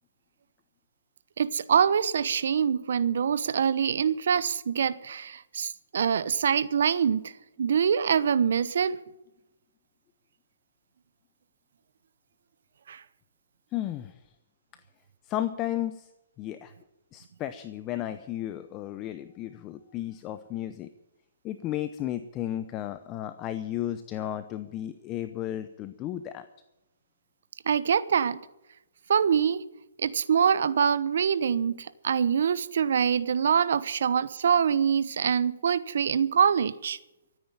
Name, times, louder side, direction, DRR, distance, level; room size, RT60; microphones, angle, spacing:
voice 1, 1.4-7.3 7.6-9.0 12.9-13.0 27.7-28.4 29.1-29.6 30.0-37.0, right 7 dB, 65° right, 16 dB, 1.0 m, -24 dB
voice 2, 13.7-14.1 15.2-16.1 16.4-16.7 17.1-20.9 21.4-26.5, left 12 dB, 25° left, 11 dB, 0.7 m, -33 dB
14.0 x 9.5 x 9.2 m, 0.92 s
hypercardioid pair, 155°, 0 cm